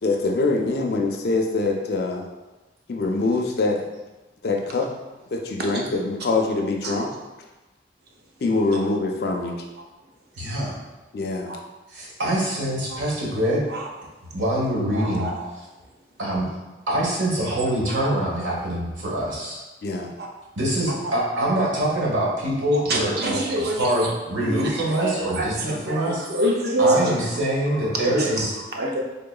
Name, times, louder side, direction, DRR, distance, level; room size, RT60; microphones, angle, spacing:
voice 1, 0.0-2.2 2.9-3.8 4.4-4.9 5.3-7.1 8.4-9.6 11.1-11.5 19.8-20.1, left 3 dB, 55° left, 2 dB, 0.4 m, -24 dB
voice 2, 10.4-10.8 11.9-13.6 14.3-15.3 16.2-16.5 16.9-19.6 20.6-23.3 23.8-26.2 26.8-28.4, right 1 dB, 85° right, -4 dB, 1.1 m, -24 dB
voice 3, 14.9-15.5 17.5-17.6 17.9-18.1 20.2-20.3 21.0-21.1 22.7-24.1 24.4-29.0, right 1 dB, 55° right, -1 dB, 0.6 m, -27 dB
3.6 x 3.5 x 2.3 m, 1.1 s
head